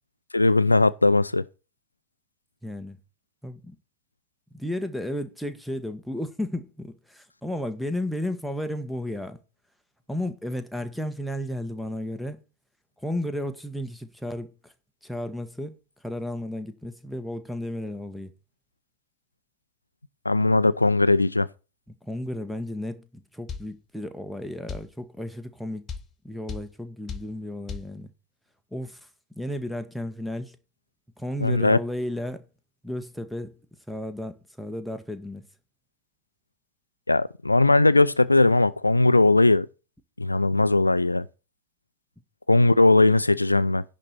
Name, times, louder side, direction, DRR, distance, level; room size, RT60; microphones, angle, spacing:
voice 1, 0.3-1.4 20.2-21.5 31.4-31.8 37.1-39.7 40.2-41.3 42.5-43.8, left 2 dB, 85° left, 0.4 m, -19 dB
voice 2, 2.6-3.0 3.4-3.7 4.5-9.4 10.1-12.4 13.0-14.7 15.0-15.8 16.0-18.3 21.9-25.9 26.2-28.1 28.7-29.1 29.3-30.6 31.2-32.4 32.8-33.6 33.9-35.5, left 1 dB, ahead, 1.4 m, -33 dB
sound 1, 23.5-23.7 24.7-24.9 25.9-26.1 26.5-26.7 27.1-27.3 27.7-27.9, left 6 dB, 25° left, 1.2 m, -34 dB
11.0 x 4.2 x 7.6 m
figure-of-eight pair, 90°, 0 cm